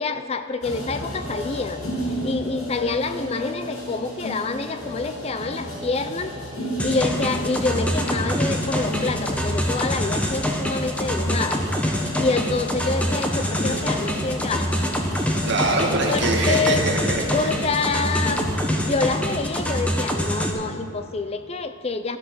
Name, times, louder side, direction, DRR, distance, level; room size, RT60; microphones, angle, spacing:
voice 1, 0.0-6.3 6.8-11.7 12.2-14.7 16.1-16.8 17.3-18.4 18.7-22.2, left 3 dB, 30° left, 10 dB, 0.4 m, -27 dB
sound 1, 0.6-18.6, equal, 80° left, 3.8 m, -33 dB
sound 2, 6.8-20.5, equal, 5° left, 1.0 m, -25 dB
voice 2, 15.4-17.5, right 2 dB, 55° right, -1 dB, 2.0 m, -23 dB
14.0 x 11.5 x 6.1 m, 2.5 s
head